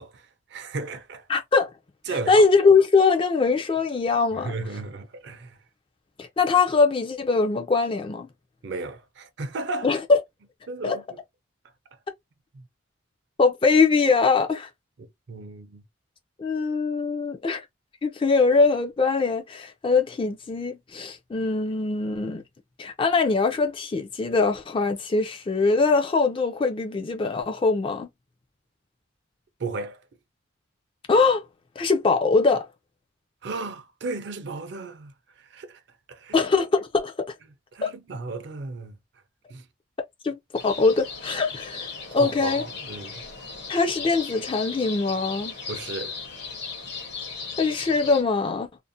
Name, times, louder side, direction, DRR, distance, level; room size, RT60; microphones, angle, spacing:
voice 1, 0.0-1.3 2.1-2.5 4.4-5.6 8.6-9.9 10.7-11.2 12.5-12.7 15.0-15.8 29.6-30.0 33.4-35.1 35.4-35.8 36.1-36.4 37.7-39.0 39.5-39.6 42.1-43.2 45.7-46.1, right 3 dB, 55° right, 0.4 m, -34 dB
voice 2, 1.3-1.7 2.3-4.5 6.2-8.3 9.8-10.2 10.8-11.0 13.4-14.7 16.4-17.6 18.0-22.4 22.8-28.1 31.1-31.4 31.8-32.7 36.3-37.3 37.8-37.9 40.2-40.4 40.6-41.9 42.1-42.6 43.7-45.5 47.6-48.7, left 4 dB, 25° left, 0.3 m, -22 dB
sound 1, 40.5-48.2, left 5 dB, 55° left, 0.7 m, -37 dB
2.5 x 2.0 x 2.5 m
head